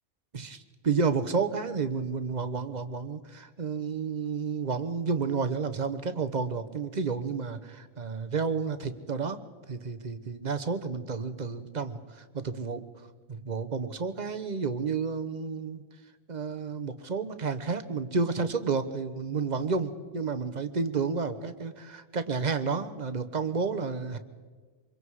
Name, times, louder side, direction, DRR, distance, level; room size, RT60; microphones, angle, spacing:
voice 1, 0.3-9.4 9.7-12.8 13.3-15.8 16.3-24.2, right 5 dB, 35° right, 11 dB, 1.0 m, -31 dB
26.0 x 22.5 x 4.9 m, 1.4 s
omnidirectional pair, 1.4 m